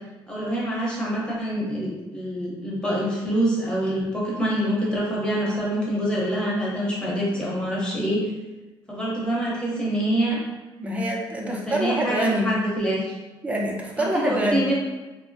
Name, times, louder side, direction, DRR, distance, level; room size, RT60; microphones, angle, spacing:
voice 1, 0.3-8.2 8.9-10.4 11.4-13.0 14.0-14.7, right 1 dB, 10° left, -6 dB, 0.9 m, -25 dB
voice 2, 10.8-12.5 13.4-14.7, right 1 dB, 15° right, -1 dB, 0.5 m, -25 dB
3.1 x 2.1 x 2.7 m, 1.1 s
cardioid pair, 120°, 9 cm